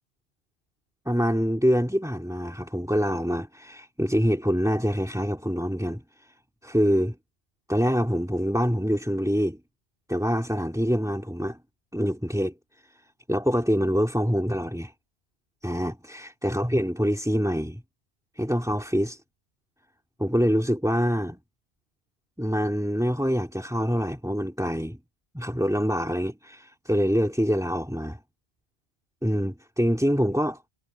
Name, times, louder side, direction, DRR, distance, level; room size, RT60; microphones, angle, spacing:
voice 1, 1.1-6.0 6.6-7.1 7.7-9.6 10.1-11.6 11.9-12.5 13.3-14.9 15.6-17.8 18.4-19.2 20.2-21.4 22.4-25.0 25.3-28.2 29.2-30.6, equal, 5° right, 3.1 m, -25 dB
omnidirectional pair, 1.1 m